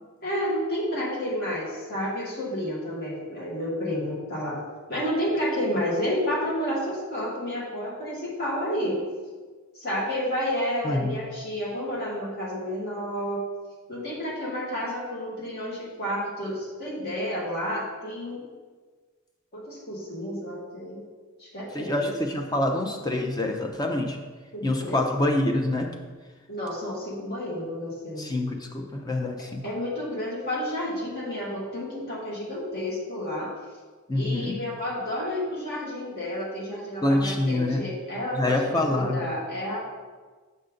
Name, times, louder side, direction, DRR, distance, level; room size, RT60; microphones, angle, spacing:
voice 1, 0.2-4.6 4.9-9.0 9.7-13.4 13.9-18.4 19.5-21.0 21.4-22.1 24.5-25.0 26.5-28.3 29.6-33.5 34.1-39.8, equal, 45° left, -5 dB, 2.0 m, -30 dB
voice 2, 10.8-11.1 21.7-24.2 24.6-25.9 28.2-29.6 34.1-34.6 37.0-37.8 38.3-39.2, left 1 dB, 15° left, 3 dB, 0.5 m, -26 dB
6.6 x 5.4 x 3.8 m, 1.4 s
head